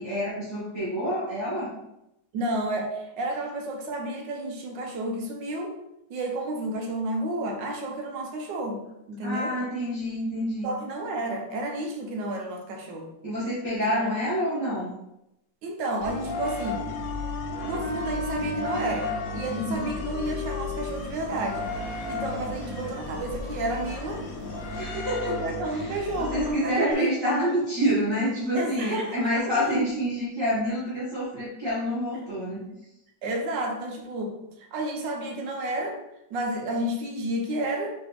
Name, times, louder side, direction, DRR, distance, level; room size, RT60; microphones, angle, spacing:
voice 1, 0.0-1.7 9.2-10.7 13.2-14.9 19.5-19.9 24.7-32.8, equal, 15° right, -10 dB, 1.2 m, -28 dB
voice 2, 2.3-5.7 6.1-9.5 10.6-13.1 14.0-14.1 15.6-16.8 17.6-24.2 25.3-27.0 28.5-29.8 33.2-36.0 36.3-37.9, right 1 dB, 75° right, 2 dB, 1.4 m, -31 dB
sound 1, 16.0-26.9, left 3 dB, 65° left, 0.9 m, -35 dB
Wind instrument woodwind instrument, 16.1-21.0, left 1 dB, 90° left, 1.5 m, -36 dB
sound 2, 19.7-24.9, equal, 55° right, 1.3 m, -43 dB
4.7 x 3.2 x 3.4 m, 0.85 s
omnidirectional pair, 2.1 m